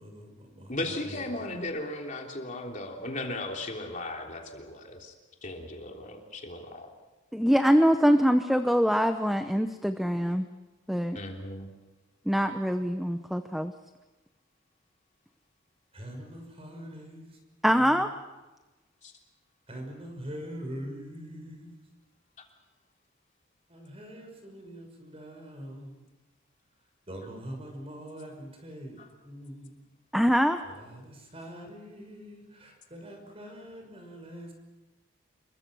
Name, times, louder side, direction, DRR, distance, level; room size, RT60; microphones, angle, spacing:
voice 1, 0.0-1.7 15.9-17.4 17.7-18.2 19.7-21.7 23.7-26.1 27.1-29.8 30.6-34.5, equal, 30° right, 3 dB, 6.1 m, -43 dB
voice 2, 0.7-5.1 5.4-6.9 11.1-11.7 19.0-19.1 29.0-29.1, left 2 dB, 40° left, 1 dB, 3.4 m, -36 dB
voice 3, 7.3-10.5 10.9-11.2 12.3-13.7 17.6-18.1 30.1-30.6, equal, ahead, 7 dB, 0.8 m, -24 dB
28.0 x 23.0 x 6.3 m, 1.1 s
head